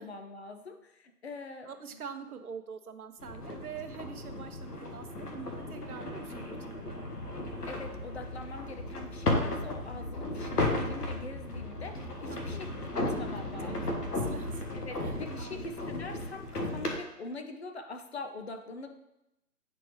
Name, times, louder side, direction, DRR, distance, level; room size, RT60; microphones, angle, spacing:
voice 1, 0.0-1.7 7.7-12.7 13.0-13.9 14.8-19.0, left 3 dB, 45° left, 5 dB, 0.7 m, -43 dB
voice 2, 1.6-7.1 12.3-12.6 13.4-15.7, right 6 dB, 70° right, 7 dB, 0.8 m, -45 dB
sound 1, 3.2-17.0, left 2 dB, 75° left, 1.4 m, -35 dB
sound 2, 7.1-14.4, left 3 dB, 15° right, 0.9 m, -46 dB
8.5 x 4.3 x 3.2 m, 0.87 s
figure-of-eight pair, 145°, 47 cm